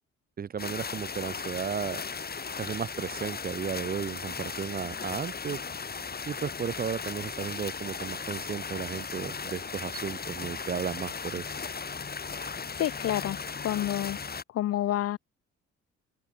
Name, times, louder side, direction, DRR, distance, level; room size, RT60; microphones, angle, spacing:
voice 1, 0.4-2.0 2.6-5.6 6.3-11.5, right 7 dB, 30° right, 0.5 m, -34 dB
sound 1, 0.6-14.4, left 5 dB, 30° left, 2.2 m, -37 dB
voice 2, 12.4-13.4 13.6-14.2 14.5-15.2, left 13 dB, 55° left, 0.5 m, -29 dB
cardioid pair, 90°, 30 cm